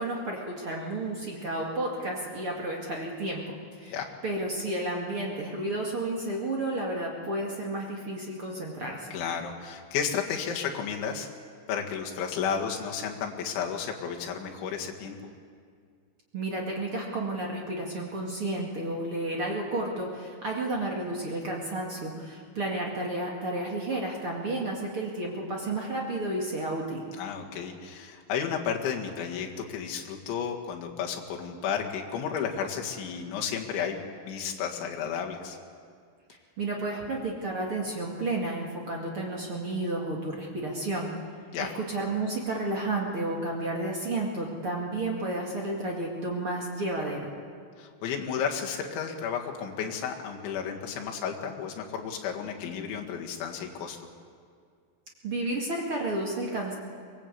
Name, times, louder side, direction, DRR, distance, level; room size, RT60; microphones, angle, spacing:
voice 1, 0.0-3.4 3.8-4.0 4.2-9.1 16.3-27.0 36.6-41.1 41.6-47.3 55.2-56.7, right 2 dB, 40° right, -1 dB, 2.1 m, -31 dB
voice 2, 9.1-11.3 11.7-15.2 27.2-35.6 41.5-41.7 47.8-54.0, left 7 dB, 75° left, 1 dB, 4.2 m, -32 dB
23.5 x 20.5 x 8.5 m, 2.1 s
omnidirectional pair, 5.5 m